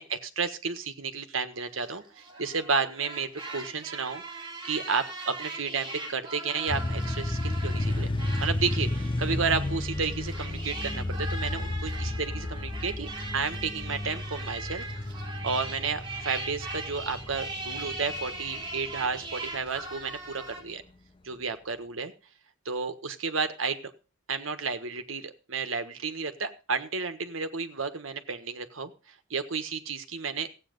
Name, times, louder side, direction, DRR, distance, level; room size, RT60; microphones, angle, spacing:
voice 1, 0.0-4.2 4.6-8.1 8.4-14.8 15.4-20.8 21.2-22.1 22.6-23.9 24.3-28.9 29.3-30.5, right 5 dB, 80° right, 8 dB, 1.5 m, -32 dB
sound 1, 1.6-20.6, right 2 dB, 25° right, 3.2 m, -40 dB
sound 2, 6.7-19.8, left 1 dB, 25° left, 0.6 m, -33 dB
15.5 x 8.7 x 5.4 m, 0.34 s
head